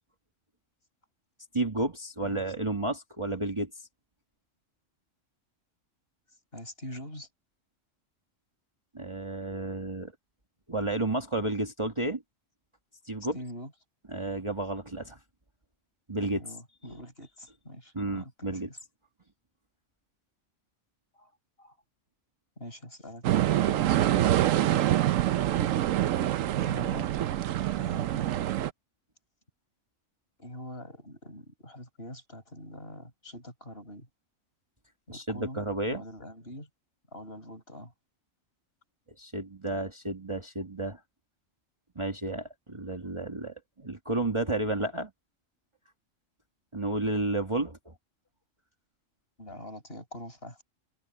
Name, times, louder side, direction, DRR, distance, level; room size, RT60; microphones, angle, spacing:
voice 1, 1.5-3.7 8.9-10.1 10.7-12.2 13.1-13.4 14.1-15.2 16.1-16.4 17.9-18.7 35.1-36.0 39.2-41.0 42.0-45.1 46.7-47.9, right 2 dB, 20° right, 1.9 m, -31 dB
voice 2, 6.5-7.3 13.3-13.7 16.2-18.8 21.2-21.3 21.6-21.7 22.6-24.7 26.5-27.1 27.8-28.3 30.4-34.1 35.1-35.7 35.9-36.7 37.1-37.9 49.4-50.6, equal, 45° left, 8.3 m, -44 dB
sound 1, 23.2-28.7, right 13 dB, 75° right, 1.0 m, -25 dB
omnidirectional pair, 1.4 m